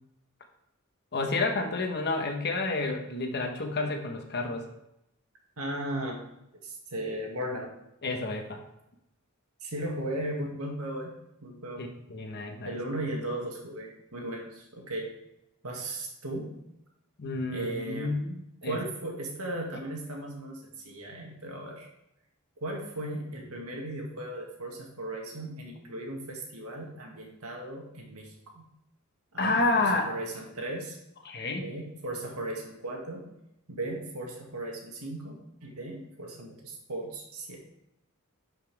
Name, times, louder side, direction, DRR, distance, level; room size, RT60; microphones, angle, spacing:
voice 1, 1.1-4.7 8.0-8.6 11.8-12.8 17.2-18.8 29.4-30.1 31.2-31.7, left 3 dB, 50° left, 4 dB, 1.2 m, -30 dB
voice 2, 5.6-6.2 6.6-7.7 9.6-11.9 12.6-15.1 15.6-16.6 17.5-18.2 18.6-21.9 22.6-28.7 29.3-31.0 31.6-33.3 33.7-37.6, right 1 dB, 90° right, 0 dB, 2.1 m, -36 dB
11.5 x 5.7 x 3.5 m, 0.85 s
head